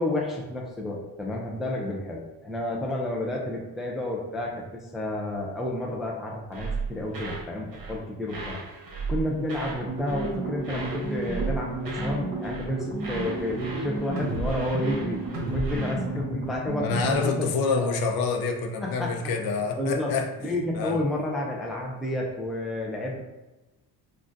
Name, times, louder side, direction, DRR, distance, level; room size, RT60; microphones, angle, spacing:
voice 1, 0.0-8.6 9.1-15.2 15.5-18.0 18.8-19.2 19.8-20.1 20.4-23.2, left 1 dB, ahead, -1 dB, 0.3 m, -31 dB
sound 1, 6.5-7.5 7.7-8.0 8.3-9.8 10.1-10.4 10.6-12.2 12.4-12.7 13.0-15.9, right 3 dB, 60° right, 0.9 m, -35 dB
sound 2, 9.7-17.4, right 2 dB, 20° right, 1.1 m, -33 dB
voice 2, 16.8-20.3 20.7-21.0, left 4 dB, 65° left, 4 dB, 0.6 m, -27 dB
3.7 x 2.3 x 2.5 m, 1.0 s
cardioid pair, 105°, 39 cm